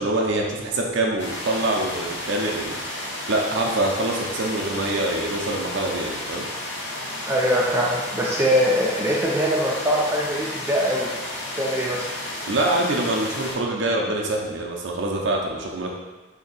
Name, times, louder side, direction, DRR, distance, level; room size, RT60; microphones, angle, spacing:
voice 1, 0.0-2.8 3.3-6.5 12.5-15.9, right 2 dB, 70° right, 0 dB, 0.5 m, -25 dB
sound 1, 1.2-13.5, left 1 dB, 65° left, 0.9 m, -32 dB
voice 2, 7.3-11.1 11.5-12.0, equal, 15° right, -4 dB, 0.4 m, -22 dB
2.8 x 2.6 x 4.0 m, 1.4 s
head